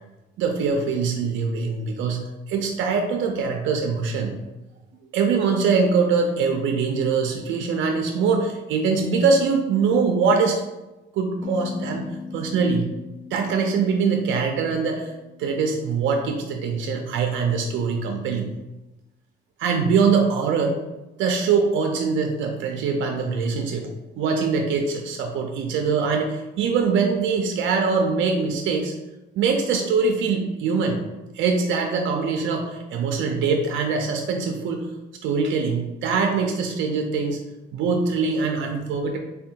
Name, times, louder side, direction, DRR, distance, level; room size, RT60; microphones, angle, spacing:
voice 1, 0.4-4.3 5.1-10.6 11.1-12.1 12.3-12.9 13.3-15.1 15.4-18.5 19.6-20.8 21.2-23.9 24.2-28.9 29.4-31.0 31.3-34.9 35.2-37.4 37.7-39.2, right 5 dB, 75° right, 3 dB, 0.4 m, -23 dB
sound 1, 11.4-15.7, left 5 dB, 40° left, 0.5 m, -38 dB
3.4 x 2.2 x 2.7 m, 1.0 s
cardioid pair, 90°, 20 cm